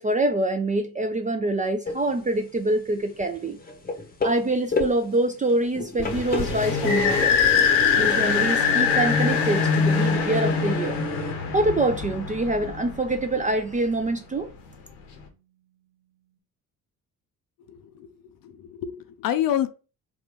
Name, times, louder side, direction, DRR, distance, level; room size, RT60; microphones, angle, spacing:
voice 1, 0.0-3.6 4.2-7.4 8.0-11.0 11.5-14.5, right 2 dB, 20° right, 0.3 m, -25 dB
sound 1, 1.9-11.3, left 3 dB, 20° left, 0.8 m, -30 dB
sound 2, 6.0-13.3, left 6 dB, 70° left, 0.9 m, -23 dB
Piano, 15.3-15.4, right 11 dB, 90° right, 0.7 m, -47 dB
voice 2, 17.7-18.1 18.4-19.7, left 11 dB, 50° left, 0.5 m, -27 dB
4.0 x 2.2 x 2.9 m
hypercardioid pair, 45°, 46 cm